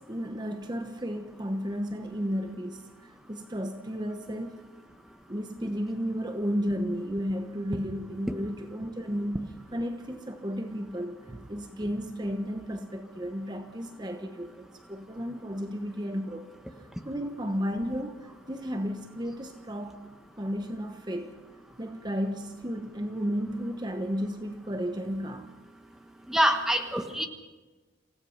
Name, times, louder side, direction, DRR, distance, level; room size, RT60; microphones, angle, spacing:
voice 1, 0.1-4.6 5.3-16.5 17.0-20.0 20.4-21.4 21.8-25.5, equal, 20° right, 5 dB, 1.1 m, -33 dB
voice 2, 26.3-27.3, equal, ahead, 4 dB, 1.3 m, -25 dB
27.5 x 16.0 x 5.8 m, 1.2 s
head